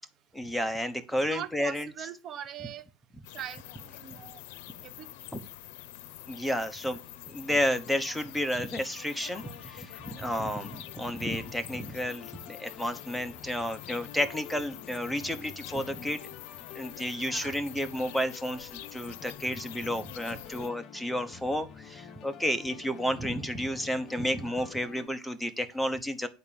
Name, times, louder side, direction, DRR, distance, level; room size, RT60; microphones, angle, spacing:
voice 1, 0.3-1.9 5.3-5.4 6.3-7.0 7.3-16.2 16.7-26.3, equal, ahead, 1.0 m, -31 dB
voice 2, 1.3-2.8 3.3-4.4 4.8-5.1 10.2-10.3 17.2-17.5 19.4-19.5, right 10 dB, 40° right, 1.1 m, -41 dB
sound 1, 3.2-20.7, left 13 dB, 75° left, 0.7 m, -46 dB
sound 2, 8.8-25.1, left 8 dB, 40° left, 1.0 m, -49 dB
11.0 x 4.0 x 6.9 m
supercardioid pair, 135°, 0 cm